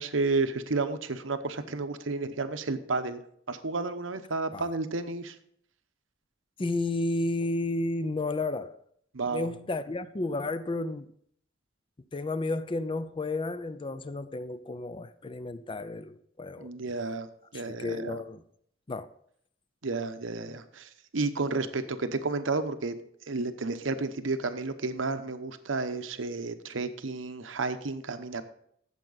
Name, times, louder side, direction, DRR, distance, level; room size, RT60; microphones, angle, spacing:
voice 1, 0.0-3.2 3.5-5.3 9.1-9.5 16.6-18.2 19.8-23.0 23.3-28.4, right 3 dB, 90° right, 0.9 m, -32 dB
voice 2, 6.6-8.8 9.3-11.1 12.1-16.7 17.5-18.4 18.9-19.1, left 2 dB, 25° left, 0.5 m, -32 dB
13.5 x 7.6 x 4.0 m
head